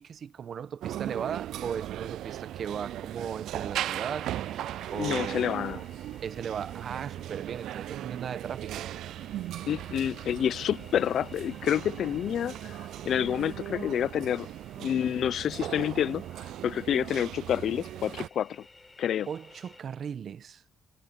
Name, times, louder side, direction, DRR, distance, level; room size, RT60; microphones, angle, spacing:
voice 1, 0.0-4.3 4.9-5.9 6.2-8.9 19.3-20.6, right 8 dB, 55° right, 1.2 m, -37 dB
sound 1, 0.8-18.3, right 12 dB, 80° right, 0.4 m, -38 dB
sound 2, 3.7-19.8, left 3 dB, 20° left, 6.4 m, -56 dB
voice 2, 5.0-5.8 9.6-12.7 13.1-14.5 14.8-16.2 16.6-18.6 19.0-19.3, left 10 dB, 70° left, 0.7 m, -28 dB
cardioid pair, 90°, 0 cm